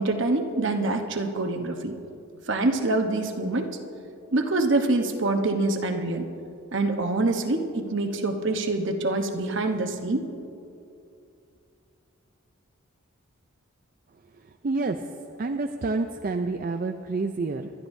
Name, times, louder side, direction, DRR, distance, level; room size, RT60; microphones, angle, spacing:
voice 1, 0.0-1.9 2.5-3.7 4.3-6.3 6.7-10.2, right 2 dB, 55° right, 4 dB, 1.0 m, -25 dB
voice 2, 14.6-15.1 15.4-17.7, right 3 dB, 40° right, 6 dB, 0.4 m, -28 dB
25.5 x 11.5 x 2.7 m, 2.6 s
head